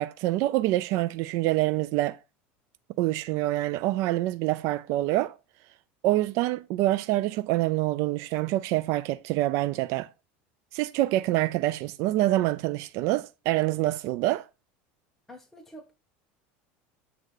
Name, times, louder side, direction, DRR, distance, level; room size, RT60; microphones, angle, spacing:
voice 1, 0.0-2.2 3.0-5.4 6.0-10.1 10.7-14.5, right 16 dB, 60° right, 0.4 m, -26 dB
voice 2, 15.3-15.9, right 1 dB, 5° left, 1.3 m, -47 dB
7.8 x 3.7 x 6.5 m
supercardioid pair, 135°, 6 cm